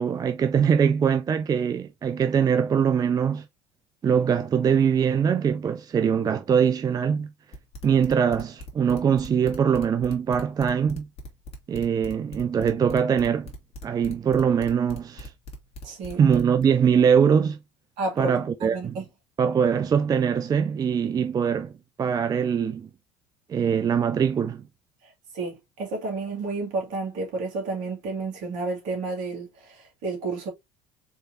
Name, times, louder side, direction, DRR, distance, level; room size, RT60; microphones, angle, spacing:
voice 1, 0.0-3.5 4.0-7.3 7.8-11.1 11.7-13.5 13.8-15.3 16.2-17.6 18.2-19.0 19.4-21.7 22.0-22.9 23.5-24.6, right 7 dB, 25° right, 0.4 m, -22 dB
sound 1, 7.5-16.6, equal, 45° left, 1.7 m, -40 dB
voice 2, 15.8-16.2 18.0-18.3 18.6-19.0 25.3-30.5, right 3 dB, 55° right, 2.2 m, -31 dB
4.3 x 3.1 x 2.7 m
figure-of-eight pair, 65°, 15 cm